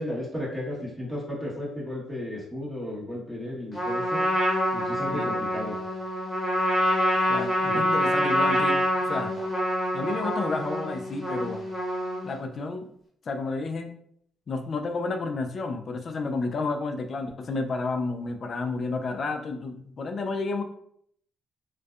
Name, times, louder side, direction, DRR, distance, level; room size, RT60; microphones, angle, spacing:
voice 1, 0.0-4.2 4.7-5.8 7.6-7.8, left 1 dB, 5° right, -6 dB, 1.2 m, -34 dB
Trumpet, 3.7-12.4, equal, 20° left, 1.1 m, -26 dB
voice 2, 7.3-9.3 9.9-11.6 12.2-12.9 13.3-13.9 14.5-20.6, left 3 dB, 50° left, 6 dB, 0.3 m, -31 dB
2.5 x 2.2 x 2.3 m, 0.68 s
cardioid pair, 90°, 0 cm